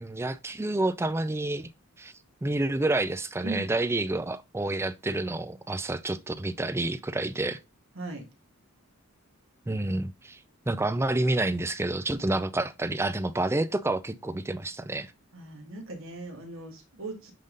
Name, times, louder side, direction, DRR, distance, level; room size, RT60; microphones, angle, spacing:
voice 1, 0.0-1.7 2.0-2.1 2.4-7.6 9.7-10.4 10.7-15.1, right 2 dB, 10° right, 0.4 m, -29 dB
voice 2, 15.3-17.3, right 2 dB, 65° right, 1.8 m, -38 dB
9.2 x 3.7 x 3.9 m
head